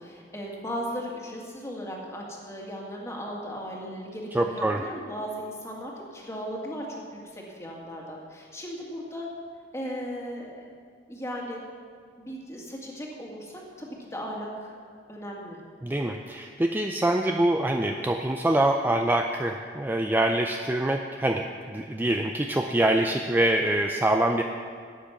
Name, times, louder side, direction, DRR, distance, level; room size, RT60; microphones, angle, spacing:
voice 1, 0.0-9.3 9.7-10.7 11.1-11.6 12.2-14.7 15.1-15.6, equal, 15° left, -2 dB, 2.0 m, -37 dB
voice 2, 4.3-4.8 15.8-24.4, right 1 dB, 10° right, 4 dB, 0.4 m, -25 dB
12.0 x 9.1 x 5.9 m, 2.1 s
head